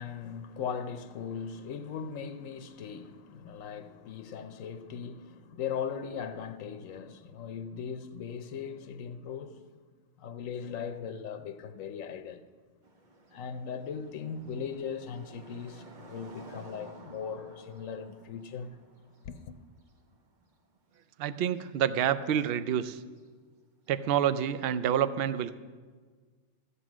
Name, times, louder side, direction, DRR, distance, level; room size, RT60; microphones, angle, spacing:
voice 1, 0.0-9.6 10.2-12.4 13.3-18.8 19.2-19.6, left 7 dB, 80° left, 1.1 m, -39 dB
sound 1, 12.8-21.1 21.4-21.9 22.4-22.5 23.2-23.3 24.6-24.7, right 2 dB, 40° right, 1.1 m, -53 dB
voice 2, 21.2-23.0 23.9-25.6, right 9 dB, 60° right, 0.7 m, -28 dB
14.0 x 8.3 x 6.1 m
omnidirectional pair, 1.3 m